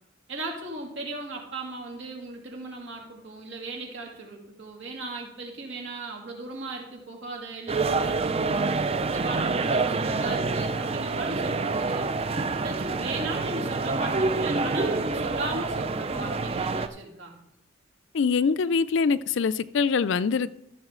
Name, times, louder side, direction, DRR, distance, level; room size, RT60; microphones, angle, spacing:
voice 1, 0.3-8.6 9.0-17.4, right 2 dB, 65° right, 0 dB, 2.4 m, -37 dB
sound 1, 7.7-16.9, right 3 dB, 30° right, 0.4 m, -27 dB
voice 2, 18.1-20.5, left 5 dB, 65° left, 16 dB, 0.4 m, -24 dB
13.5 x 7.0 x 3.7 m, 0.81 s
head